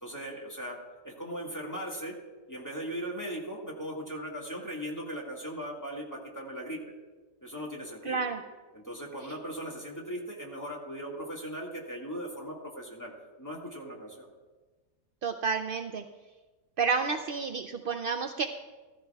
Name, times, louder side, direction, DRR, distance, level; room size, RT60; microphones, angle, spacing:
voice 1, 0.0-2.2 2.5-6.8 7.4-8.2 8.7-13.1 13.4-14.3, equal, 10° left, -3 dB, 1.9 m, -38 dB
voice 2, 8.0-8.4 15.2-16.0 16.8-18.5, right 5 dB, 75° right, 5 dB, 0.5 m, -30 dB
15.5 x 14.0 x 2.3 m, 1.3 s
omnidirectional pair, 1.5 m